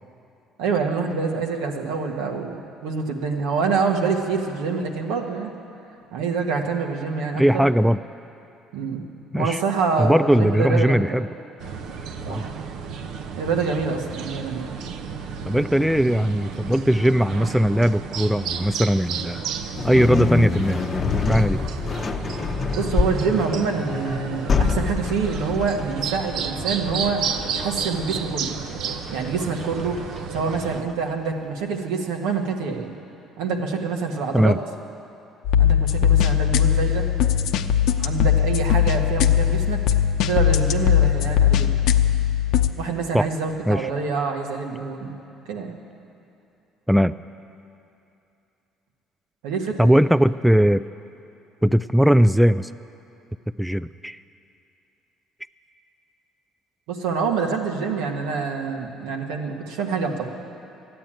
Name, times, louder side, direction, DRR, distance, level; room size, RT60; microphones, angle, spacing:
voice 1, 0.6-5.5 6.1-7.6 8.7-9.0 9.3-11.2 12.3-12.5 13.4-14.7 22.7-28.6 29.1-30.0 30.3-32.9 33.4-34.6 35.6-37.1 38.0-39.8 40.2-41.7 42.8-45.2 45.5-45.7 49.4-50.0 56.9-60.3, right 5 dB, 85° right, 2 dB, 1.5 m, -26 dB
voice 2, 7.4-8.0 9.3-9.6 10.0-11.3 12.3-12.5 15.5-19.4 19.8-20.9 21.3-21.6 34.3-34.6 43.1-43.3 43.7-43.9 46.9-47.1 49.8-50.8 51.6-52.7 53.6-54.2, equal, ahead, 14 dB, 0.3 m, -19 dB
sound 1, 11.6-30.8, right 6 dB, 70° right, 0.7 m, -32 dB
sound 2, 19.8-30.9, left 5 dB, 35° left, 0.8 m, -27 dB
sound 3, 35.4-42.7, left 10 dB, 75° left, 0.6 m, -19 dB
13.5 x 9.5 x 8.9 m, 2.8 s
supercardioid pair, 80°, 0 cm